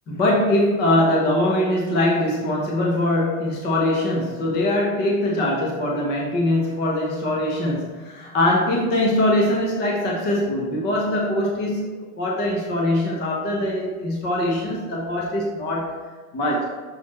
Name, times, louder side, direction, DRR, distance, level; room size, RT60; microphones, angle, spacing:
voice 1, 0.1-11.9 12.2-16.0 16.3-16.7, left 1 dB, 25° left, -2 dB, 0.9 m, -22 dB
6.2 x 4.1 x 4.2 m, 1.4 s
supercardioid pair, 150°, 44 cm